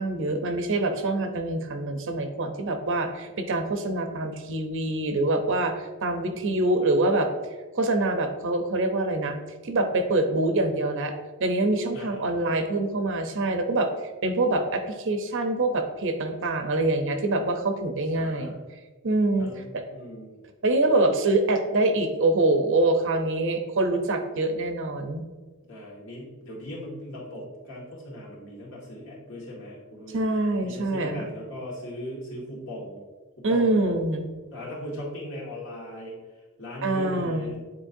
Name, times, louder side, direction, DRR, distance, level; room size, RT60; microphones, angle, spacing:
voice 1, 0.0-7.3 7.7-9.4 9.6-11.1 11.4-13.9 14.2-18.5 19.0-19.8 20.6-25.2 30.1-31.3 33.4-34.3 36.8-37.6, right 2 dB, 55° right, 6 dB, 0.7 m, -25 dB
voice 2, 6.2-6.6 11.9-12.5 18.1-18.6 19.4-20.4 25.7-30.2 30.6-33.0 33.4-33.8 34.5-36.2 36.6-37.6, equal, 60° left, -4 dB, 1.9 m, -39 dB
8.8 x 4.2 x 2.7 m, 1.3 s
head